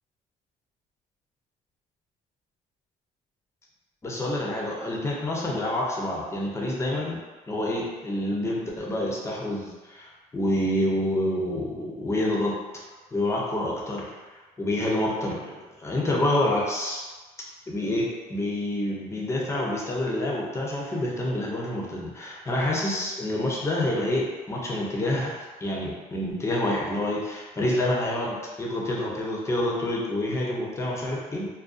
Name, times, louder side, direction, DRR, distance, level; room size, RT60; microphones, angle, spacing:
voice 1, 4.0-7.2 7.5-12.6 13.1-14.1 14.6-17.0 17.7-25.3 25.6-31.5, left 1 dB, 15° left, -3 dB, 0.5 m, -27 dB
2.5 x 2.2 x 2.4 m, 1.3 s
cardioid pair, 110°, 17 cm